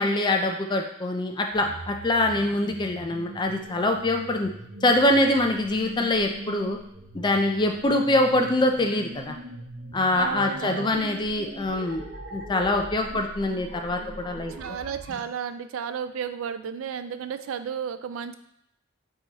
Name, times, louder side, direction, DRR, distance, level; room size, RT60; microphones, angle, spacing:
voice 1, 0.0-4.5 4.8-6.8 7.1-9.4 9.9-12.0 12.3-14.8, left 1 dB, 20° left, 3 dB, 0.4 m, -24 dB
sound 1, 1.5-15.2, right 1 dB, 65° right, 0.7 m, -42 dB
voice 2, 10.1-11.1 13.1-13.3 14.5-18.4, right 7 dB, 80° right, 11 dB, 0.3 m, -33 dB
4.1 x 3.7 x 2.9 m, 0.74 s
head